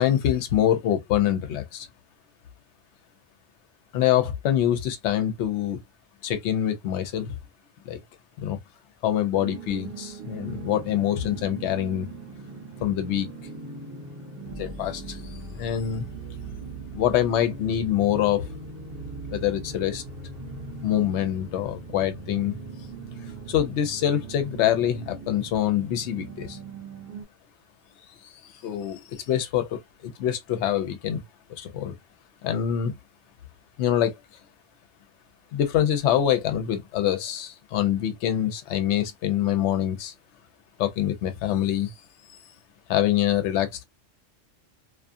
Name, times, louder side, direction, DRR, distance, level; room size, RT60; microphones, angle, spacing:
voice 1, 0.0-1.9 3.9-5.8 6.2-7.3 7.8-8.0 8.4-8.6 9.0-12.1 12.8-13.3 14.6-16.0 16.9-18.5 19.3-20.0 20.8-22.6 23.5-26.6 28.4-31.2 31.5-31.9 32.4-32.9 33.8-34.1 35.5-40.1 40.8-41.9 42.9-43.9, left 11 dB, 70° left, 0.8 m, -25 dB
sound 1, 9.4-27.2, right 3 dB, 55° right, 0.9 m, -40 dB
2.4 x 2.3 x 2.5 m
omnidirectional pair, 1.3 m